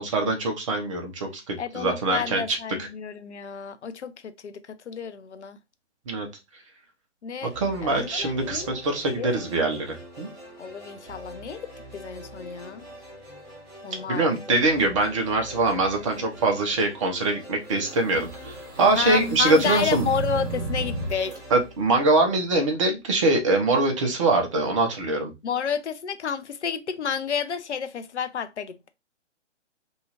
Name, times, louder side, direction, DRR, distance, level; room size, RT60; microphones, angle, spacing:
voice 1, 0.0-2.6 6.1-6.3 7.4-10.3 14.1-20.1 21.5-25.3, right 2 dB, 25° right, 0.6 m, -23 dB
voice 2, 1.6-5.6 7.2-7.5 7.8-8.7 9.2-9.3 10.6-12.8 13.8-14.6 19.0-21.3 25.4-28.9, left 7 dB, 70° left, 0.6 m, -30 dB
sound 1, 7.5-22.7, equal, 10° right, 1.1 m, -44 dB
sound 2, 17.6-21.4, right 2 dB, 65° right, 1.1 m, -33 dB
2.7 x 2.3 x 2.9 m
figure-of-eight pair, 135°, 36 cm